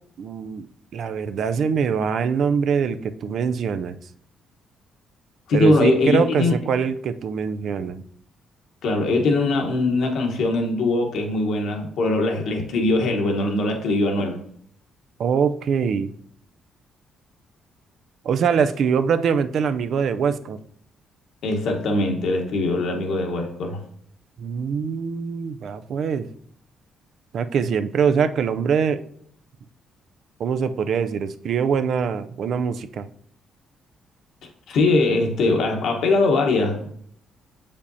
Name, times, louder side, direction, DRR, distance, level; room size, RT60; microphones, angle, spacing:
voice 1, 0.2-0.6 0.9-4.0 5.5-8.0 15.2-16.1 18.2-20.6 24.4-26.3 27.3-29.0 30.4-33.0, right 6 dB, 65° right, 11 dB, 0.4 m, -23 dB
voice 2, 5.5-6.6 8.8-14.4 21.4-23.8 34.7-36.9, left 2 dB, 75° left, 3 dB, 1.1 m, -21 dB
6.9 x 5.1 x 2.7 m, 0.64 s
cardioid pair, 90°, 0 cm